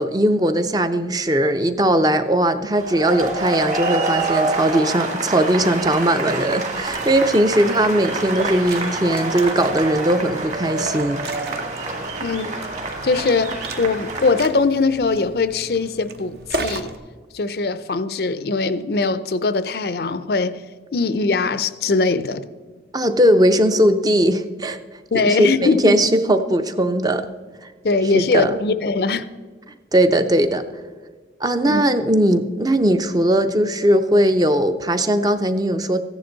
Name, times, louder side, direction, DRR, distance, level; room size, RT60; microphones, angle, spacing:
voice 1, 0.0-11.2 22.9-24.8 25.1-27.3 28.1-28.6 29.9-30.6 31.4-36.0, right 1 dB, 20° right, 0.5 m, -19 dB
sound 1, 2.7-14.4, right 2 dB, 40° right, 1.8 m, -27 dB
Liquid, 6.6-17.0, right 3 dB, 60° right, 0.9 m, -35 dB
voice 2, 12.2-12.5 13.0-16.9 17.3-20.6 20.9-22.4 25.1-25.9 27.8-29.3 31.6-31.8, left 3 dB, 55° left, 0.5 m, -21 dB
14.5 x 10.5 x 3.9 m
head